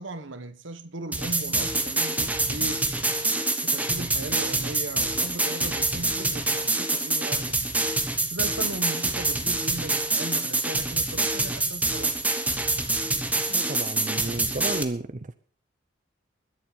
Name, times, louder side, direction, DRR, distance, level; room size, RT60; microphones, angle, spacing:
voice 1, 0.0-2.9 3.6-7.6 8.3-12.2, right 2 dB, 80° right, 1.4 m, -37 dB
sound 1, 1.1-14.8, right 2 dB, 10° right, 1.2 m, -26 dB
voice 2, 13.5-15.1, right 2 dB, 40° right, 0.6 m, -32 dB
21.0 x 7.6 x 5.3 m
head